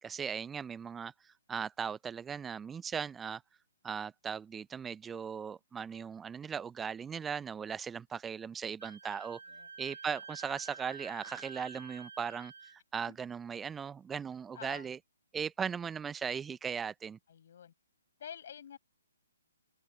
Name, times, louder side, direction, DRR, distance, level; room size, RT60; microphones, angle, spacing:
voice 1, 0.0-3.4 3.8-9.4 9.8-15.0 15.3-17.2, right 7 dB, 10° right, 0.8 m, -38 dB
Wind instrument woodwind instrument, 8.8-12.8, right 4 dB, 65° right, 2.8 m, -49 dB
voice 2, 14.5-14.9 17.3-17.7 18.2-18.8, left 8 dB, 50° left, 6.4 m, -48 dB
open air
figure-of-eight pair, 130°, 0 cm